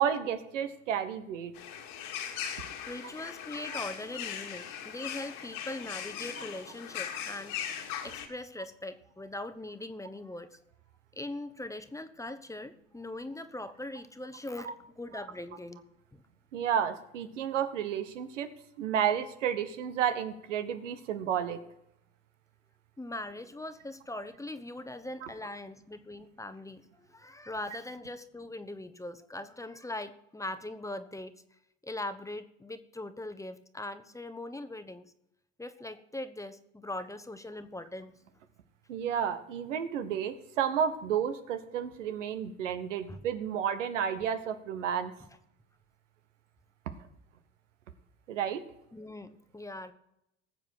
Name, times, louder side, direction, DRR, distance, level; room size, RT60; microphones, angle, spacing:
voice 1, 0.0-1.5 14.7-14.8 16.5-18.5 18.8-21.6 38.9-45.1 48.3-48.6, right 8 dB, 85° right, 10 dB, 1.2 m, -31 dB
sound 1, 1.5-8.3, left 9 dB, 60° left, 2.2 m, -39 dB
voice 2, 2.3-10.6 11.1-15.8 16.1-16.2 23.0-31.4 31.8-35.1 35.6-38.2 43.1-43.2 45.3-45.4 48.9-49.9, left 2 dB, 10° left, 11 dB, 0.9 m, -41 dB
19.0 x 7.3 x 4.5 m, 0.82 s
hypercardioid pair, 80°, 36 cm